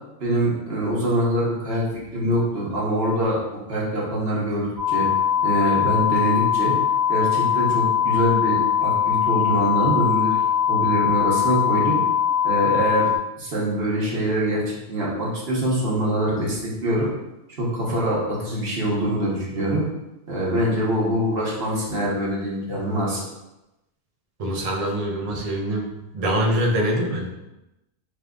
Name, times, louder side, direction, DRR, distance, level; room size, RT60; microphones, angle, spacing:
voice 1, 0.2-1.9 2.1-3.4 3.7-5.1 5.4-6.7 7.1-10.4 10.7-12.0 12.4-13.1 13.4-17.1 17.6-19.9 20.3-23.2, right 1 dB, 60° right, -5 dB, 1.3 m, -24 dB
sound 1, 4.8-13.2, left 9 dB, 10° left, 1.1 m, -21 dB
voice 2, 24.4-27.3, equal, 40° right, -1 dB, 0.6 m, -24 dB
4.8 x 3.3 x 2.3 m, 0.95 s
omnidirectional pair, 1.2 m